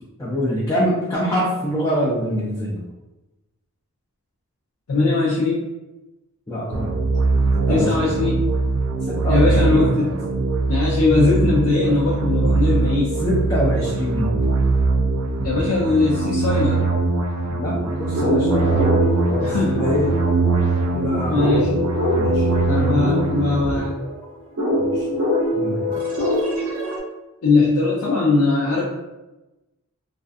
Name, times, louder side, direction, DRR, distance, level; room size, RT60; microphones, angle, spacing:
voice 1, 0.2-2.8 6.5-6.9 7.5-8.2 9.0-10.2 13.2-14.4 17.5-19.0 19.2-20.1 20.9-21.6 22.2-22.5 22.8-23.1 23.9-24.3 24.8-25.1 25.6-26.0, equal, 15° left, -7 dB, 0.4 m, -25 dB
voice 2, 4.9-5.6 7.7-8.4 9.3-10.2 10.7-13.2 15.4-16.8 19.4-19.9 21.3-21.8 22.7-23.9 27.4-28.8, left 3 dB, 85° left, -5 dB, 0.5 m, -20 dB
sound 1, 6.7-23.8, right 3 dB, 85° right, 0.3 m, -22 dB
sound 2, 17.7-27.0, left 1 dB, 70° right, 0.7 m, -24 dB
2.5 x 2.3 x 2.4 m, 1.0 s
head